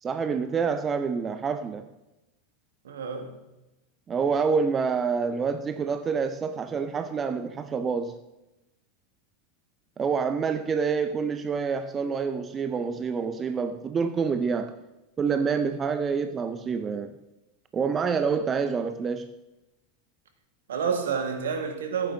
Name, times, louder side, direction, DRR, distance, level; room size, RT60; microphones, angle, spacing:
voice 1, 0.0-1.9 4.1-8.1 10.0-14.7 15.2-17.1 17.7-19.3, right 5 dB, 25° right, 0.5 m, -27 dB
voice 2, 2.8-3.4 20.7-22.1, right 6 dB, 65° right, 1.4 m, -29 dB
15.0 x 8.9 x 2.6 m
figure-of-eight pair, 85°, 0 cm